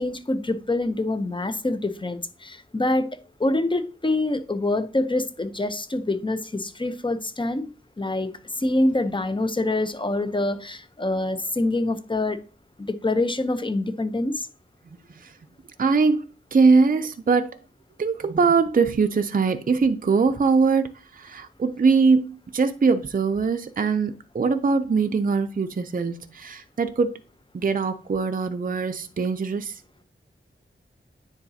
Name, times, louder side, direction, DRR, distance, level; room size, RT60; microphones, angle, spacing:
voice 1, 0.0-7.7 8.0-8.3 8.6-12.4 12.8-14.5, left 2 dB, 25° left, 0.7 m, -25 dB
voice 2, 15.8-16.2 16.5-17.6 18.0-27.1 27.5-29.7, right 4 dB, 40° right, 0.5 m, -22 dB
9.5 x 3.9 x 2.8 m
wide cardioid pair, 55°, 21 cm